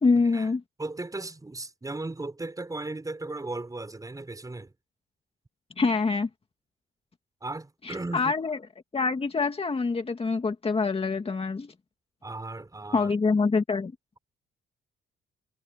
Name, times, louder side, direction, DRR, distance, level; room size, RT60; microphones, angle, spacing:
voice 1, 0.0-0.6 5.8-6.3 7.8-8.6 8.9-11.7 12.9-13.9, left 4 dB, 30° left, 2.1 m, -25 dB
voice 2, 0.8-4.7 7.4-8.3 12.2-13.1, right 2 dB, 15° right, 5.9 m, -36 dB
cardioid pair, 90°, 20 cm